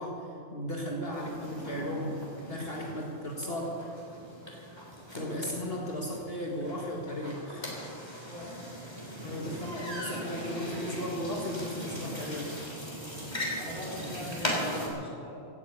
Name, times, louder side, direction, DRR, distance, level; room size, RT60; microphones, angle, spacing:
voice 1, 0.0-2.2 2.5-3.7 5.1-7.7 9.2-12.8, equal, 55° left, -2 dB, 2.0 m, -35 dB
sound 1, 1.1-14.9, equal, 20° left, 3.3 m, -39 dB
voice 2, 13.6-15.5, equal, 5° left, -5 dB, 4.2 m, -42 dB
17.0 x 9.9 x 8.4 m, 2.7 s
omnidirectional pair, 1.2 m